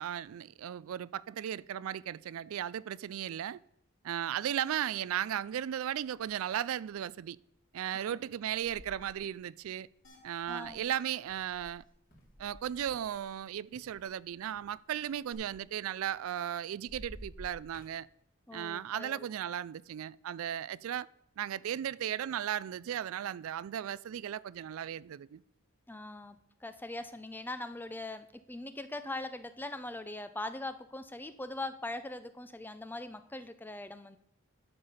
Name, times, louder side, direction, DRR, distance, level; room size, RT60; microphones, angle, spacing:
voice 1, 0.0-3.6 4.0-7.4 7.7-9.9 10.2-11.8 12.4-18.1 18.5-21.1 21.4-25.4, right 10 dB, 70° right, 0.3 m, -36 dB
sound 1, 6.1-6.5 7.0-7.3 8.2-13.4 13.7-16.5 16.8-18.0, equal, 40° left, 3.1 m, -54 dB
sound 2, 10.0-10.6 10.9-11.0 11.4-11.5 11.8-11.9 15.3-15.4, left 2 dB, 65° left, 2.9 m, -61 dB
voice 2, 10.5-10.8 18.5-19.3 25.9-34.2, left 2 dB, 10° left, 0.5 m, -41 dB
11.0 x 6.9 x 5.6 m
head